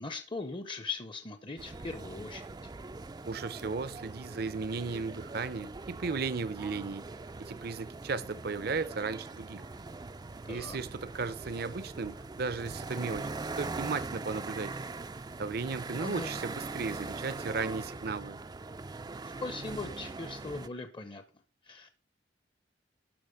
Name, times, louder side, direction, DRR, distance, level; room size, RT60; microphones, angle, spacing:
voice 1, 0.0-2.4 10.5-10.8 16.0-16.3 19.2-21.2 21.6-21.9, left 3 dB, 25° left, 0.7 m, -39 dB
sound 1, 1.6-20.7, right 3 dB, 20° right, 0.4 m, -42 dB
voice 2, 3.3-7.1 7.4-9.6 10.5-13.3 13.6-14.8 15.4-18.4, right 4 dB, 55° right, 0.7 m, -35 dB
12.0 x 4.2 x 6.3 m
head